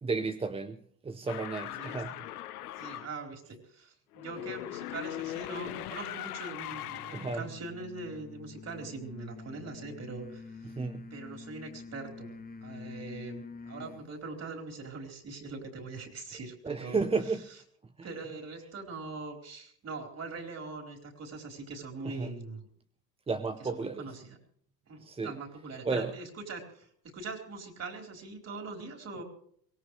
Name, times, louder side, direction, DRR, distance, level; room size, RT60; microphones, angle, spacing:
voice 1, 0.0-2.2 7.1-7.4 10.8-11.0 16.6-17.5 18.0-18.1 22.0-22.3 23.3-24.1 25.0-25.3 25.9-26.1, right 4 dB, 15° right, 9 dB, 0.7 m, -33 dB
sound 1, 1.3-3.1 4.1-7.5, left 14 dB, 85° left, 1.0 m, -40 dB
voice 2, 1.6-2.3 2.8-10.7 11.1-12.3 12.6-17.0 18.0-22.6 23.6-24.4 24.9-29.2, right 3 dB, 35° right, 3 dB, 4.4 m, -42 dB
sound 2, 6.7-14.1, left 4 dB, 20° left, 1.3 m, -47 dB
23.5 x 18.0 x 3.3 m, 0.62 s
hypercardioid pair, 90°, 44 cm